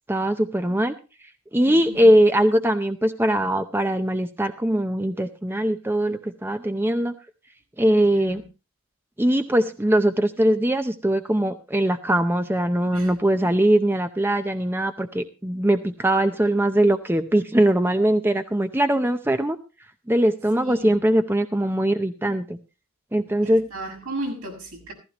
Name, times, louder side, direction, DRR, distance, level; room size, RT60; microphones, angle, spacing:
voice 1, 0.1-0.9 1.5-7.1 7.8-8.4 9.2-19.6 20.1-22.6 23.1-23.7, right 1 dB, 10° right, 0.6 m, -21 dB
voice 2, 1.6-2.2 7.8-8.4 12.9-13.1 20.6-20.9 23.4-24.9, right 1 dB, 75° right, 6.5 m, -35 dB
15.5 x 15.0 x 2.9 m
head